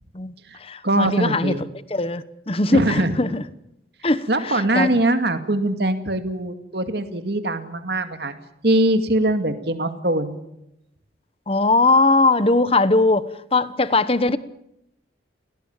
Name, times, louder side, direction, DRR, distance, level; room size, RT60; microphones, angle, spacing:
voice 1, 0.1-3.4 4.0-5.0 11.5-14.4, left 2 dB, 30° left, 1.0 m, -20 dB
voice 2, 0.8-1.6 2.7-3.1 4.3-8.3 8.6-10.4, right 1 dB, 60° right, 2.2 m, -22 dB
30.0 x 18.0 x 7.3 m
head